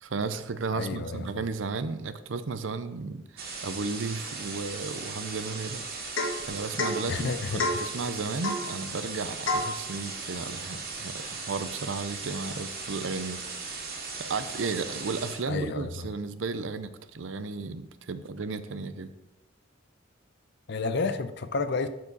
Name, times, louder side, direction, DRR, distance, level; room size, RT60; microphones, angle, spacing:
voice 1, 0.0-5.8 6.5-13.4 14.2-19.1, right 4 dB, 70° right, 12 dB, 0.6 m, -34 dB
voice 2, 0.7-1.2 7.1-7.6 15.5-16.1 20.7-21.9, left 4 dB, 60° left, 11 dB, 0.6 m, -30 dB
sound 1, 3.4-15.4, right 4 dB, 50° right, 1.9 m, -38 dB
Domestic sounds home sounds / Chink clink / Drip, 6.2-6.5 6.8-7.0 7.6-7.9 8.4-8.7 9.4-9.8, left 2 dB, 85° left, 1.5 m, -28 dB
12.0 x 4.7 x 4.1 m, 0.95 s
head